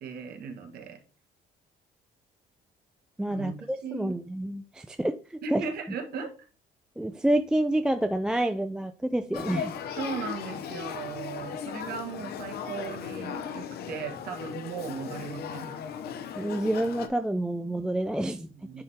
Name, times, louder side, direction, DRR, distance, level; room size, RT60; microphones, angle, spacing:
voice 1, 0.0-1.0 3.3-4.1 5.4-6.3 10.0-15.7 18.5-18.8, right 5 dB, 65° right, 1.5 m, -37 dB
voice 2, 3.2-5.6 7.0-9.7 16.4-18.5 18.7-18.8, right 1 dB, 5° right, 0.3 m, -28 dB
Male speech man speaking / Child speech kid speaking / Conversation, 9.3-17.1, left 8 dB, 70° left, 0.7 m, -37 dB
10.0 x 3.5 x 2.8 m
cardioid pair, 110°, 17 cm